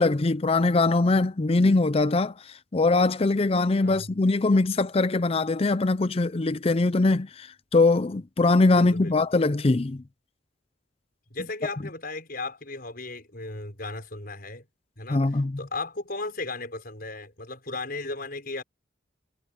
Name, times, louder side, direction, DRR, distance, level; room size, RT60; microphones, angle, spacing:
voice 1, 0.0-2.3 2.7-10.0 15.1-15.6, left 3 dB, 30° left, 0.5 m, -22 dB
voice 2, 3.8-4.1 8.8-9.1 11.3-14.6 15.0-18.6, left 3 dB, 50° left, 6.1 m, -36 dB
head